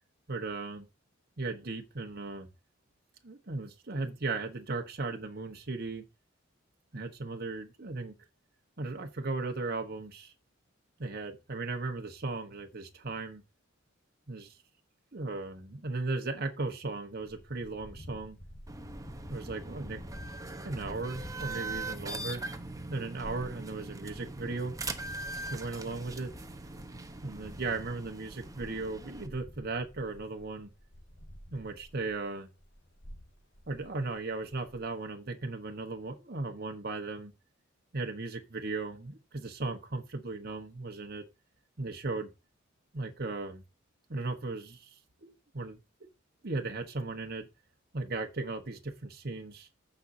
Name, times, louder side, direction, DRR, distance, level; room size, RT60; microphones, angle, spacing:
voice 1, 0.3-0.9 1.4-2.5 3.2-6.0 6.9-8.1 8.8-10.3 11.0-13.4 14.3-14.6 15.1-18.4 19.3-20.0 20.6-22.4 22.9-24.8 25.5-26.3 27.2-30.7 31.5-32.5 33.7-37.3 37.9-41.2 41.8-42.3 42.9-43.6 44.1-45.8 46.4-47.5 47.9-49.7, right 3 dB, 50° right, 1.2 m, -36 dB
sound 1, 17.2-32.2 32.6-35.0, equal, 60° left, 2.1 m, -51 dB
sound 2, 18.7-29.3, right 2 dB, 15° right, 1.0 m, -41 dB
15.0 x 5.5 x 2.8 m
head